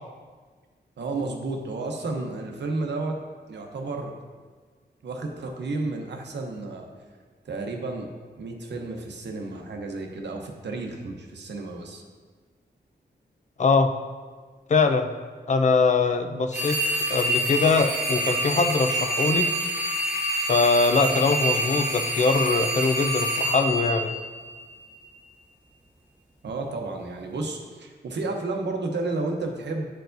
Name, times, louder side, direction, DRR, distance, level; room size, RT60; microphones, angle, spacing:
voice 1, 1.0-3.2 3.5-4.1 5.0-6.9 7.4-8.1 8.4-12.0 26.4-29.9, right 3 dB, 80° right, 3 dB, 0.8 m, -32 dB
voice 2, 13.6-13.9 14.7-15.1 15.5-16.8 17.1-19.5 20.4-24.1, left 4 dB, 45° left, 7 dB, 0.4 m, -22 dB
sound 1, 16.5-24.7, right 1 dB, 10° right, 1.2 m, -27 dB
9.1 x 4.6 x 2.6 m, 1.5 s
wide cardioid pair, 155°, 18 cm